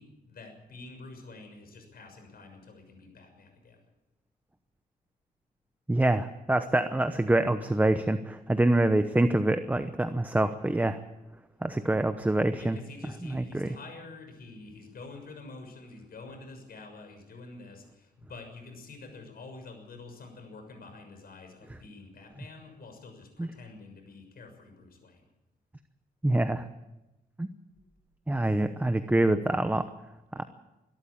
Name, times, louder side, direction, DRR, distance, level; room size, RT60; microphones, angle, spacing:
voice 1, 0.0-3.8 12.6-25.2, left 3 dB, 65° left, 4 dB, 6.6 m, -47 dB
voice 2, 5.9-11.0 11.6-12.8 13.2-13.7 23.4-23.5 26.2-26.6 27.4-27.5 28.3-29.9 30.4-30.5, right 1 dB, 10° right, 9 dB, 0.9 m, -25 dB
24.5 x 13.0 x 8.6 m, 0.98 s
wide cardioid pair, 130°, 17 cm